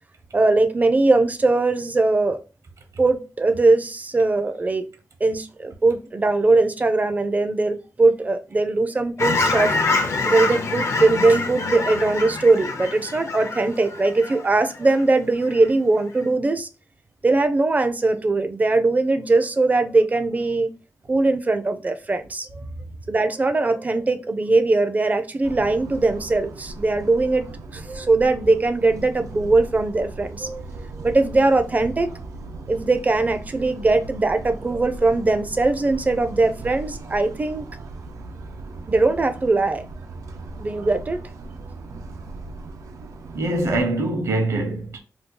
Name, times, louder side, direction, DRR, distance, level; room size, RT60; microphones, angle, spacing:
voice 1, 0.3-2.4 3.0-4.9 5.2-16.7 17.2-20.7 21.1-22.7 23.1-27.5 27.7-32.1 32.7-37.6 38.9-39.8 40.6-41.2, right 3 dB, 30° right, 0.4 m, -20 dB
Fowl / Chirp tweet, 9.2-15.0 15.4-15.7, left 3 dB, 60° left, 0.5 m, -25 dB
sound 1, 25.4-43.8, right 3 dB, 90° right, 0.4 m, -38 dB
voice 2, 43.3-45.0, right 2 dB, 65° right, 0.8 m, -23 dB
2.7 x 2.3 x 3.6 m
wide cardioid pair, 100°, 6 cm